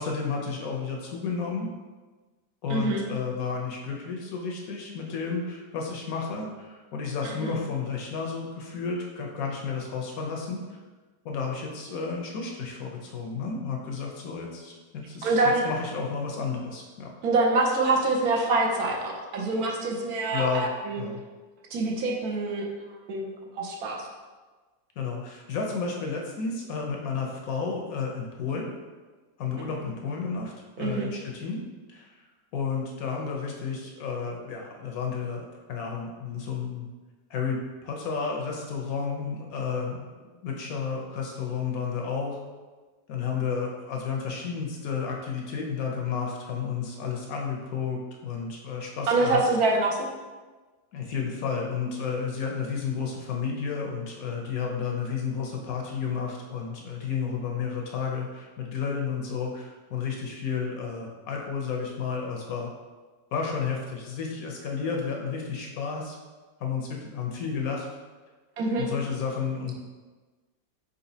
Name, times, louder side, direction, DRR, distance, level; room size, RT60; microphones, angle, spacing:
voice 1, 0.0-1.7 2.6-10.6 11.2-17.1 20.3-20.7 21.0-21.2 25.0-28.7 29.4-31.6 31.9-32.3 32.5-36.9 37.3-40.1 40.4-42.4 43.1-49.4 50.9-62.7 63.3-66.2 66.6-67.9 68.8-69.7, left 5 dB, 70° left, 0 dB, 1.0 m, -32 dB
voice 2, 2.7-3.0 7.4-7.5 15.2-15.7 17.2-21.0 21.7-22.6 23.1-23.3 23.6-24.0 30.8-31.1 49.1-50.1 68.6-68.9, right 2 dB, 70° right, -1 dB, 1.1 m, -25 dB
4.3 x 3.9 x 2.7 m, 1.3 s
omnidirectional pair, 1.7 m